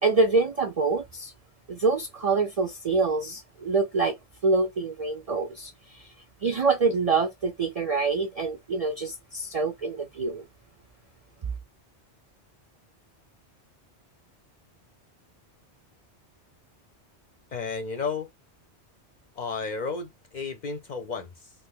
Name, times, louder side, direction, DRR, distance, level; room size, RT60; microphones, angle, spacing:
voice 1, 0.0-1.3 1.7-4.2 4.4-6.1 6.4-10.4, right 4 dB, 55° right, 0.4 m, -26 dB
voice 2, 17.5-18.3 19.3-21.5, left 4 dB, 55° left, 0.5 m, -33 dB
3.2 x 2.4 x 3.5 m
omnidirectional pair, 1.2 m